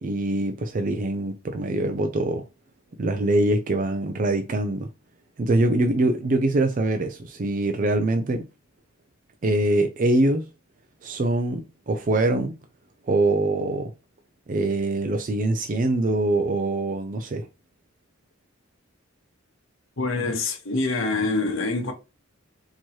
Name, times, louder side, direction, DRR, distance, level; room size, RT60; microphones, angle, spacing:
voice 1, 0.0-2.4 3.0-4.9 5.4-8.5 9.4-10.4 11.0-12.5 13.1-13.9 14.5-17.5, right 2 dB, 40° right, 0.4 m, -23 dB
voice 2, 20.0-21.9, left 3 dB, 80° left, 1.1 m, -25 dB
4.5 x 2.9 x 2.9 m
head